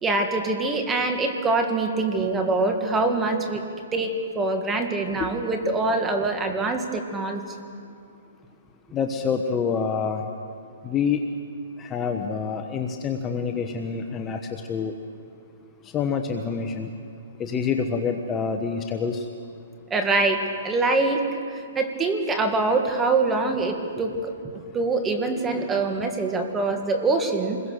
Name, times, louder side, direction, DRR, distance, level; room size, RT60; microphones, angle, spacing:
voice 1, 0.0-3.6 3.9-7.4 19.9-21.2 21.5-24.3 24.7-27.6, right 3 dB, 10° right, 5 dB, 2.0 m, -24 dB
voice 2, 8.9-10.3 10.8-11.2 11.8-14.9 15.9-16.9 17.4-19.2, left 6 dB, 15° left, 5 dB, 1.1 m, -27 dB
28.5 x 21.5 x 6.6 m, 2.4 s
hypercardioid pair, 155°, 0 cm